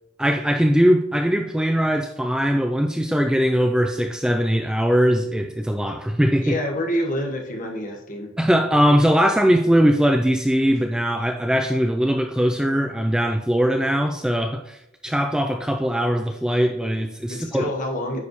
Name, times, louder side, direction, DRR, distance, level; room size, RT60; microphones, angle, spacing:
voice 1, 0.2-6.6 8.4-17.6, equal, 5° right, 0.4 m, -20 dB
voice 2, 6.4-8.3 17.3-18.2, equal, 40° left, 1.4 m, -27 dB
9.6 x 5.2 x 3.2 m
head